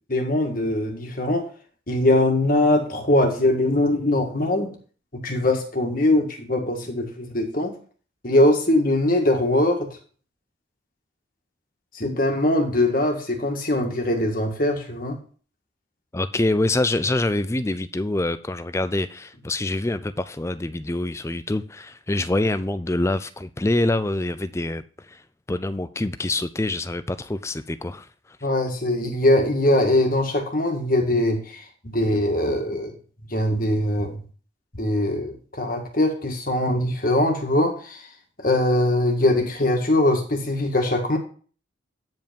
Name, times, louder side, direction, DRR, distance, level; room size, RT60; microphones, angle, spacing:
voice 1, 0.1-1.5 1.9-4.7 5.2-7.7 8.2-9.9 11.9-15.2 28.4-32.9 33.3-34.2 34.7-38.1 38.4-41.2, left 1 dB, 45° left, 1.8 m, -22 dB
voice 2, 16.1-25.2 25.5-28.1, left 2 dB, 15° left, 0.4 m, -25 dB
9.2 x 5.4 x 5.2 m
head